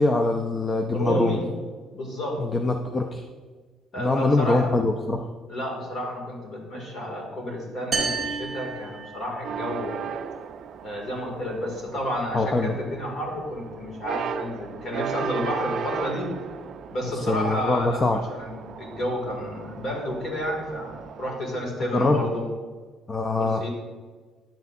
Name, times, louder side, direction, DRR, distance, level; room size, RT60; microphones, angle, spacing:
voice 1, 0.0-1.4 2.4-3.2 4.0-5.3 12.3-12.7 17.0-18.2 21.9-22.2 23.1-23.6, left 2 dB, 20° left, 5 dB, 0.4 m, -23 dB
voice 2, 0.9-1.5 1.9-2.4 3.9-4.7 5.5-10.1 10.8-16.3 16.9-20.9 21.2-22.5 23.4-23.7, equal, 40° left, -1 dB, 2.3 m, -31 dB
sound 1, 7.9-9.6, right 4 dB, 10° right, 1.5 m, -30 dB
sound 2, 9.4-21.3, right 7 dB, 45° right, 0.4 m, -36 dB
10.0 x 8.0 x 2.6 m, 1.4 s
cardioid pair, 170°, 0 cm